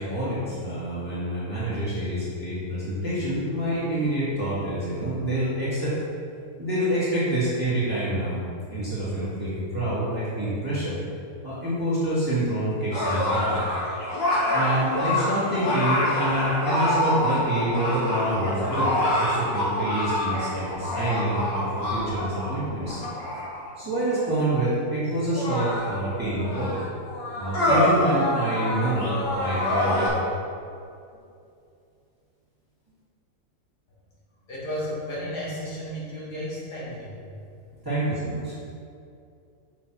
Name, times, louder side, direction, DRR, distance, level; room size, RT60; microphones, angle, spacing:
voice 1, 0.0-6.0 6.6-8.4 8.7-11.0 11.4-13.6 14.5-18.9 19.2-23.0 23.8-26.8 27.4-30.1 37.9-38.5, right 1 dB, 15° right, -11 dB, 1.8 m, -27 dB
sound 1, 12.9-23.7 24.6-24.7 25.3-30.1, left 1 dB, 40° left, 1.5 m, -26 dB
voice 2, 34.5-37.1, equal, 80° left, -7 dB, 2.5 m, -33 dB
6.1 x 5.6 x 4.5 m, 2.5 s
omnidirectional pair, 1.7 m